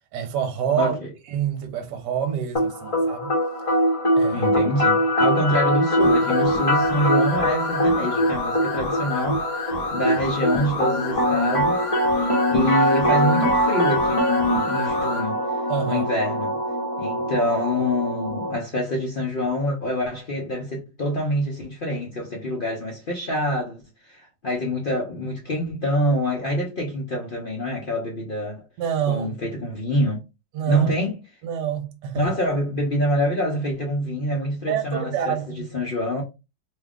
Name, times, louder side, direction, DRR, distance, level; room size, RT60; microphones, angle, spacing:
voice 1, 0.1-1.0 1.3-3.3 4.2-4.5 15.7-16.1 28.8-29.3 30.5-30.9 31.4-32.3 34.7-35.7, right 8 dB, 75° right, 1.3 m, -27 dB
voice 2, 0.8-1.1 4.3-11.8 12.2-16.6 17.0-28.6 29.1-30.2 30.7-31.2 32.1-36.2, equal, 80° left, 0.4 m, -26 dB
sound 1, 2.5-18.5, equal, 25° left, 0.8 m, -22 dB
sound 2, 6.0-15.3, left 4 dB, 60° left, 0.8 m, -31 dB
3.0 x 2.4 x 3.4 m
omnidirectional pair, 1.9 m